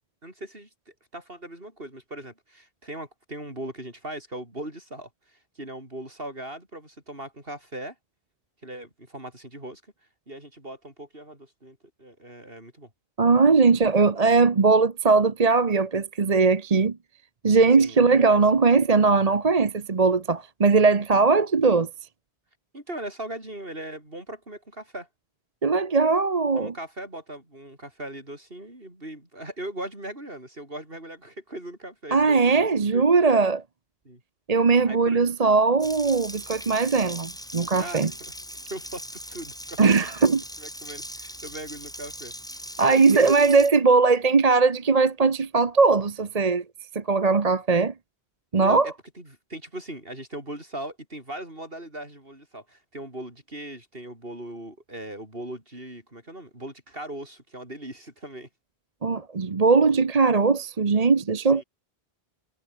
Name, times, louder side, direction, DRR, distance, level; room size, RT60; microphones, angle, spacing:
voice 1, 0.2-8.0 8.6-9.8 10.3-12.9 17.8-18.4 22.7-25.1 26.6-33.1 34.0-34.2 34.9-35.2 37.8-38.3 38.7-39.8 40.2-40.3 40.6-42.3 42.9-43.3 48.5-58.5 61.5-61.6, right 1 dB, 60° right, 7.8 m, -39 dB
voice 2, 13.2-17.0 17.4-21.9 25.6-26.7 32.1-33.6 34.5-38.1 39.8-40.4 42.8-46.6 46.9-47.9 48.5-48.9 59.0-61.6, right 4 dB, 35° right, 1.1 m, -20 dB
Water tap faucet, 35.8-43.7, equal, 5° left, 4.6 m, -40 dB
omnidirectional pair, 1.1 m